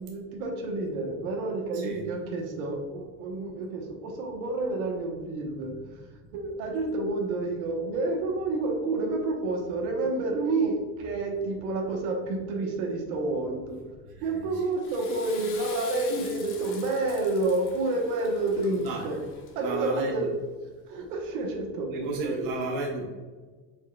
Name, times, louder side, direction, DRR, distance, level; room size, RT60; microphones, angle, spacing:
voice 1, 0.0-13.8 14.2-19.2 19.5-20.3 20.9-22.4, right 2 dB, 75° right, 2 dB, 1.1 m, -29 dB
Water / Toilet flush, 14.6-19.8, left 6 dB, 45° left, 0.9 m, -45 dB
voice 2, 19.6-20.3 21.9-23.1, right 3 dB, 50° right, 0 dB, 0.8 m, -32 dB
4.7 x 4.1 x 2.2 m, 1.4 s
supercardioid pair, 145°, 43 cm